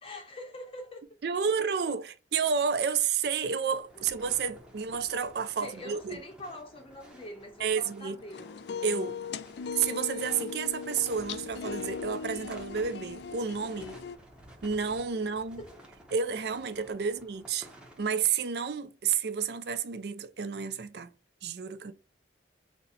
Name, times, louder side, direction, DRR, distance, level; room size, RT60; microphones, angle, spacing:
voice 1, 0.0-1.0 5.6-8.6 15.1-15.3 15.6-15.9, left 1 dB, 30° left, 0.6 m, -44 dB
voice 2, 1.2-6.2 7.6-8.2 8.8-9.2 9.7-14.0 14.6-15.6 16.1-17.7 18.0-21.1 21.4-21.9, right 6 dB, 65° right, 0.4 m, -30 dB
sound 1, 3.7-18.0, right 1 dB, 5° right, 0.7 m, -53 dB
sound 2, 8.3-14.2, left 6 dB, 65° left, 0.3 m, -38 dB
4.1 x 2.1 x 3.9 m
head